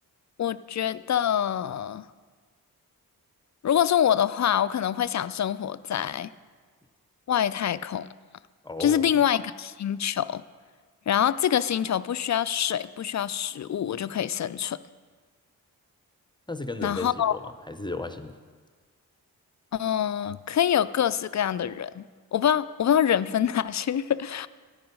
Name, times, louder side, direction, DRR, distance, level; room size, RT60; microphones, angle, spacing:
voice 1, 0.4-2.0 3.6-6.3 7.3-8.1 8.8-10.4 11.1-14.8 16.8-17.3 19.7-22.0 22.3-24.5, left 9 dB, 50° left, 16 dB, 0.4 m, -25 dB
voice 2, 8.6-9.1 16.5-18.4, left 3 dB, 10° left, 9 dB, 0.8 m, -34 dB
10.5 x 9.4 x 5.3 m, 1.5 s
cardioid pair, 40°, 38 cm